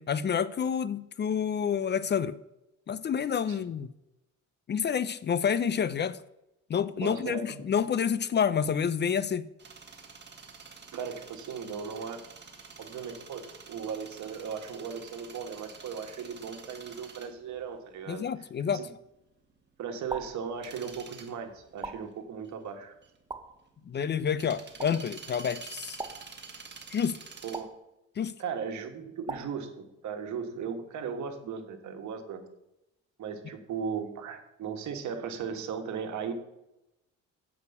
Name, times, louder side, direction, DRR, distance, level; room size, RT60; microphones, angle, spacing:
voice 1, 0.0-2.4 2.9-3.9 4.7-6.2 6.7-9.5 18.1-18.8 23.9-26.0 26.9-27.2 28.2-28.3, left 7 dB, 35° left, 0.4 m, -28 dB
voice 2, 7.0-7.6 10.9-12.2 12.8-18.3 18.7-18.9 19.8-22.9 27.4-27.7 28.4-32.4 33.2-36.3, right 6 dB, 70° right, 1.5 m, -37 dB
sound 1, 9.6-27.6, right 5 dB, 35° right, 1.7 m, -48 dB
sound 2, 20.1-20.5 21.8-22.2 23.3-23.6 24.8-25.1 26.0-26.4 27.5-27.9 29.3-29.7, right 3 dB, 15° right, 0.8 m, -40 dB
8.2 x 4.9 x 7.0 m
cardioid pair, 90°, 30 cm